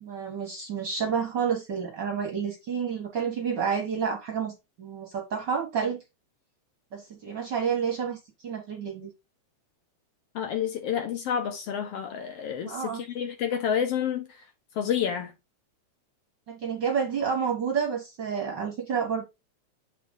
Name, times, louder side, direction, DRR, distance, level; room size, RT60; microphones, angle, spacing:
voice 1, 0.0-4.5 4.8-6.0 6.9-9.1 12.6-13.0 16.5-19.2, right 6 dB, 55° right, 1.3 m, -29 dB
voice 2, 10.3-14.3 14.8-15.3, left 8 dB, 70° left, 1.6 m, -29 dB
7.8 x 4.3 x 3.7 m
omnidirectional pair, 3.3 m